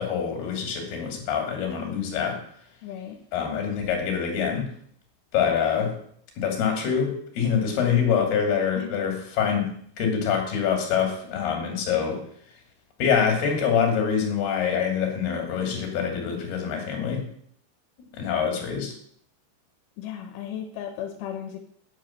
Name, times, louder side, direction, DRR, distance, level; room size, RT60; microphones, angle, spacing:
voice 1, 0.0-2.4 3.3-4.7 5.3-5.9 6.4-9.7 10.0-12.2 13.0-17.2 18.1-18.9, left 7 dB, 60° left, 3 dB, 4.3 m, -25 dB
voice 2, 2.8-3.2 8.8-8.9 20.0-21.6, left 9 dB, 85° left, 4 dB, 3.5 m, -35 dB
9.8 x 7.5 x 7.4 m, 0.64 s
omnidirectional pair, 5.5 m